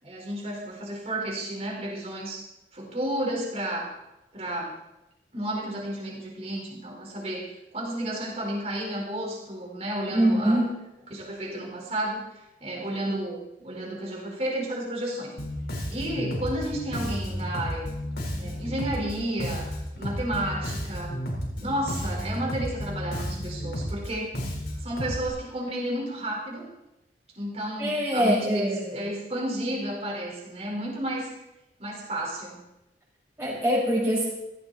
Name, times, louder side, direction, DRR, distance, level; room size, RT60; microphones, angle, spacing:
voice 1, 0.0-2.4 2.7-3.9 4.3-4.7 5.3-10.6 11.1-12.2 12.6-15.3 15.9-17.9 18.4-19.7 20.0-21.2 21.6-24.3 24.8-26.7 27.4-31.3 31.8-32.6, right 1 dB, 35° right, -2 dB, 4.5 m, -32 dB
voice 2, 10.1-10.7 27.8-29.0 33.4-34.3, equal, 15° right, -7 dB, 6.3 m, -24 dB
Bass guitar, 15.4-25.3, equal, 65° left, 4.3 m, -32 dB
16.5 x 16.0 x 4.2 m, 0.90 s
head